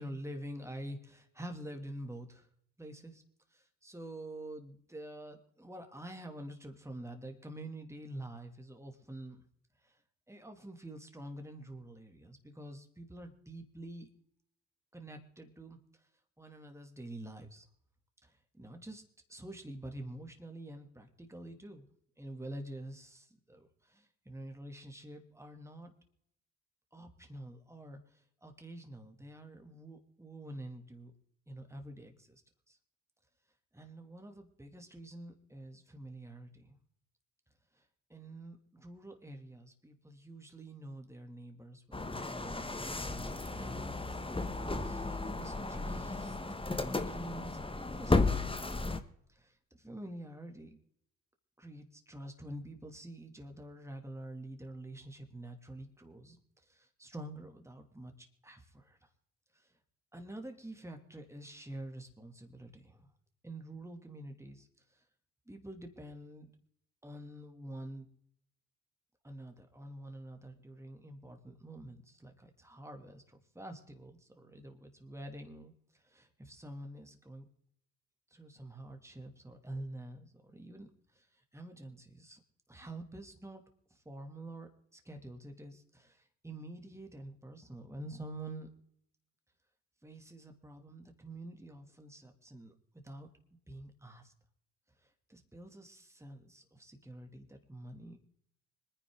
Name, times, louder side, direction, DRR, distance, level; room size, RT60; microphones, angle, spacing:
voice 1, 0.0-2.5 2.8-3.2 3.5-9.4 9.8-10.0 10.3-14.1 14.9-16.1 16.4-17.7 18.2-19.0 19.3-21.9 22.2-25.9 26.9-31.1 31.5-32.4 32.7-32.8 33.7-36.8 37.7-48.8 49.3-50.8 51.6-59.1 59.5-59.7 60.1-63.1 63.4-65.0 65.5-66.5 67.0-68.1 69.2-77.5 78.3-82.4 82.7-83.6 83.9-88.7 90.0-92.7 93.0-93.3 93.7-94.3 95.0-98.3, right 1 dB, 5° right, 5 dB, 2.8 m, -47 dB
sound 1, 41.9-49.0, left 3 dB, 15° left, 1.5 m, -34 dB
25.5 x 10.0 x 4.0 m, 0.71 s
hypercardioid pair, 50°, 39 cm